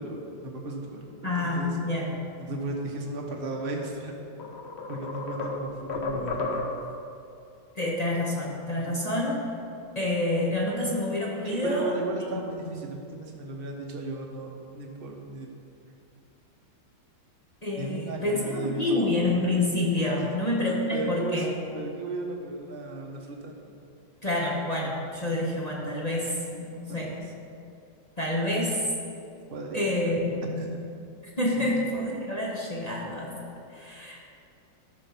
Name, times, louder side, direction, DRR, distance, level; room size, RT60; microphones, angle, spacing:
voice 1, 0.0-1.8 2.4-4.1 4.9-6.6 8.7-9.0 11.4-14.5 14.7-15.5 17.8-19.0 20.2-20.3 20.6-21.5 21.7-23.5 26.9-27.1 29.5-29.9 30.6-30.8 31.5-31.7, right 2 dB, 35° right, 1 dB, 1.1 m, -35 dB
voice 2, 1.2-2.2 7.7-9.5 9.9-12.0 12.3-12.9 17.6-21.5 24.2-27.2 28.2-28.9 29.7-30.6 31.4-34.2, left 1 dB, 25° left, -4 dB, 0.9 m, -28 dB
sound 1, 3.8-3.9 4.4-7.0, left 3 dB, 50° left, 0.8 m, -33 dB
13.0 x 4.7 x 5.8 m, 2.6 s
omnidirectional pair, 2.0 m